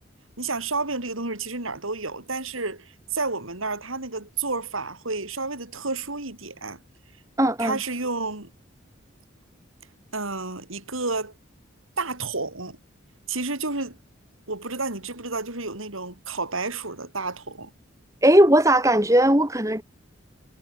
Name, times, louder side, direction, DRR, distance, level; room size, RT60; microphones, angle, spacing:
voice 1, 0.4-6.8 7.6-8.5 10.1-11.3 12.0-12.8 13.3-14.0 14.5-17.7, right 3 dB, 90° right, 6.9 m, -30 dB
voice 2, 7.4-7.8 18.2-19.8, right 1 dB, 15° right, 6.0 m, -18 dB
head